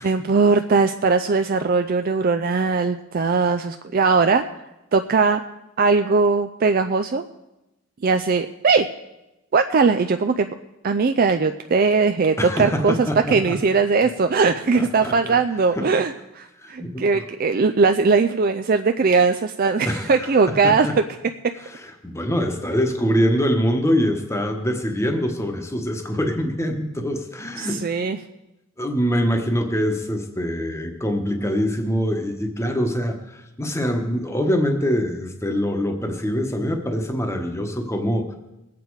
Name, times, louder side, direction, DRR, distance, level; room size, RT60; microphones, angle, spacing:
voice 1, 0.0-4.4 4.9-5.4 5.8-7.2 8.0-8.9 9.5-10.5 10.8-20.9 27.6-28.2, right 4 dB, 45° right, 8 dB, 0.4 m, -19 dB
voice 2, 12.4-13.6 14.8-15.3 15.7-15.9 16.6-17.2 19.9-21.0 21.6-27.8 28.8-38.3, equal, 15° left, 4 dB, 1.1 m, -24 dB
21.5 x 8.5 x 4.7 m, 0.97 s
head